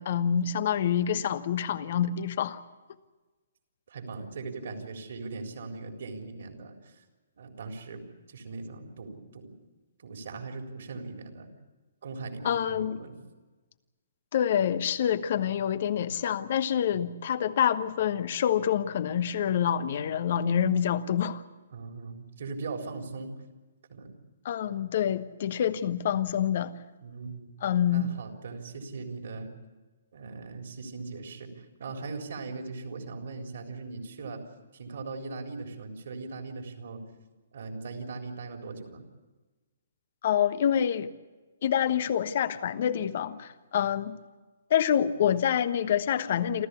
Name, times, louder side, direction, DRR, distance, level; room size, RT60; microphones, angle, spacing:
voice 1, 0.0-2.6 12.4-13.0 14.3-21.4 24.4-26.7 27.3-27.4 27.6-28.1 40.2-41.1 41.6-44.2 44.7-46.7, left 9 dB, 50° left, 13 dB, 1.2 m, -27 dB
voice 2, 3.9-7.0 7.4-8.0 8.3-9.6 10.0-11.5 12.0-13.2 17.0-17.2 21.7-23.3 23.9-24.1 27.0-27.5 27.9-29.5 30.1-34.4 34.7-37.1 37.5-39.0, right 3 dB, 60° right, 3 dB, 3.9 m, -39 dB
28.0 x 14.0 x 8.5 m, 1.2 s
figure-of-eight pair, 130°, 0 cm